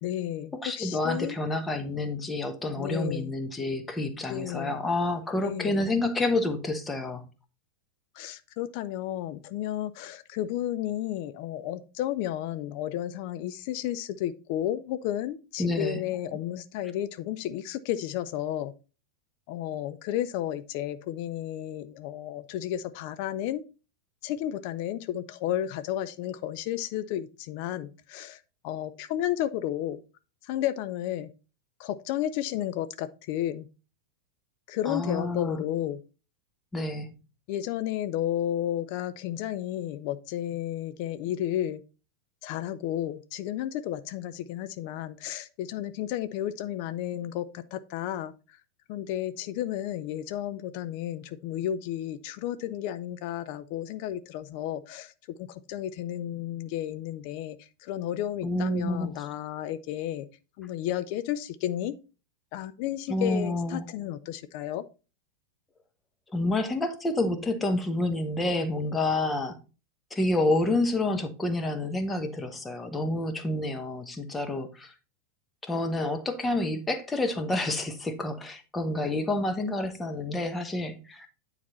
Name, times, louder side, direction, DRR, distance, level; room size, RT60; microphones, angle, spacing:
voice 1, 0.0-1.4 2.8-3.3 4.3-4.8 5.4-5.9 8.1-18.7 19.5-23.6 24.2-30.0 30.4-31.3 31.8-33.6 34.7-36.0 37.5-41.8 42.4-48.6 48.9-60.3 60.6-61.9 62.5-64.8, left 12 dB, 45° left, 12 dB, 0.5 m, -32 dB
voice 2, 0.5-7.2 15.6-16.0 34.9-35.6 36.7-37.1 58.4-59.1 63.1-63.9 66.3-69.6 70.1-74.9 75.6-81.3, left 2 dB, 15° left, 7 dB, 1.2 m, -29 dB
9.4 x 4.1 x 4.3 m, 0.33 s
figure-of-eight pair, 90°, 0 cm